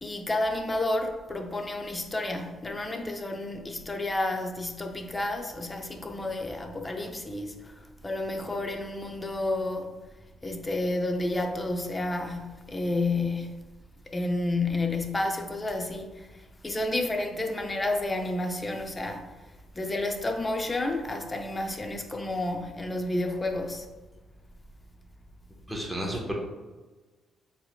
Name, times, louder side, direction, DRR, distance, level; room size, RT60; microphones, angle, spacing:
voice 1, 0.0-9.9 10.4-13.8 14.1-19.3 19.7-23.9, left 2 dB, 20° left, 0.5 m, -31 dB
voice 2, 25.7-26.3, equal, 5° right, 1.1 m, -32 dB
4.5 x 3.6 x 2.2 m
cardioid pair, 90°, 0 cm